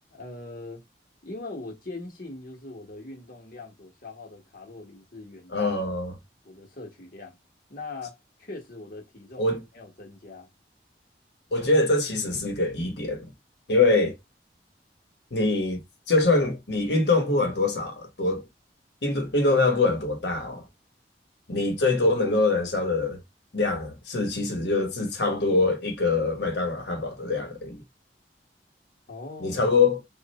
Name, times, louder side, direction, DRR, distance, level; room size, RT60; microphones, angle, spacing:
voice 1, 0.1-0.8 1.2-5.8 6.4-7.4 7.7-10.5 29.1-29.7, left 3 dB, 55° left, 1.2 m, -41 dB
voice 2, 5.5-6.1 9.4-9.6 11.5-13.3 13.7-14.2 15.3-15.8 16.1-18.4 19.0-20.6 21.5-23.2 23.5-27.8 29.4-30.0, left 3 dB, 75° left, 1.2 m, -24 dB
3.3 x 2.5 x 4.1 m
head